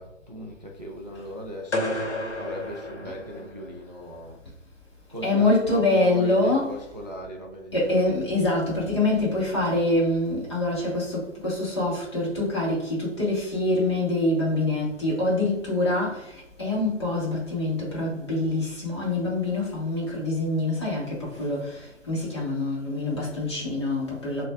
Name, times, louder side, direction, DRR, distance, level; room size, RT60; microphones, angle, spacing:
voice 1, 0.0-2.0 2.4-4.4 5.1-8.0, equal, 35° right, 0 dB, 0.4 m, -38 dB
sound 1, 1.7-3.8, left 1 dB, 60° left, 0.9 m, -31 dB
voice 2, 5.2-6.8 7.7-16.3 16.6-21.8 22.1-24.5, left 2 dB, 20° left, -5 dB, 0.9 m, -25 dB
5.8 x 2.3 x 2.2 m, 0.85 s
figure-of-eight pair, 150°, 38 cm